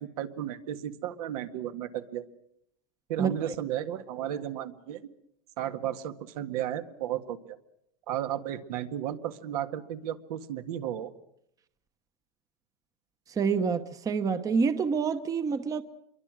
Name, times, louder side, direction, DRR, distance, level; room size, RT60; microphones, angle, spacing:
voice 1, 0.0-2.2 3.1-5.1 5.6-7.6 8.1-11.1, right 11 dB, 75° right, 1.9 m, -34 dB
voice 2, 13.3-15.8, right 5 dB, 15° right, 1.0 m, -27 dB
26.5 x 23.0 x 6.4 m
supercardioid pair, 145°, 20 cm